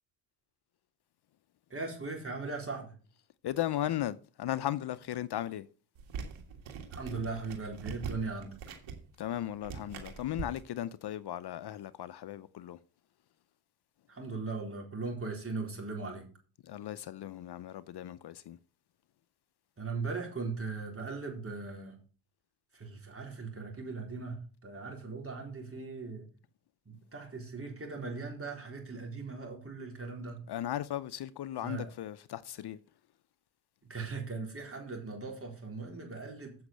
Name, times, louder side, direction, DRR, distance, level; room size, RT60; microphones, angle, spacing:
voice 1, 1.7-2.9 6.9-8.5 14.1-16.2 19.8-21.9 22.7-26.3 26.9-30.4 31.6-31.9 33.8-36.6, right 4 dB, 30° right, 4.0 m, -39 dB
voice 2, 3.4-5.7 9.2-12.8 16.6-18.6 30.5-32.8, left 12 dB, 60° left, 0.6 m, -36 dB
sound 1, 5.9-10.6, right 6 dB, 85° right, 1.8 m, -43 dB
8.1 x 6.2 x 6.6 m
cardioid pair, 70°, 46 cm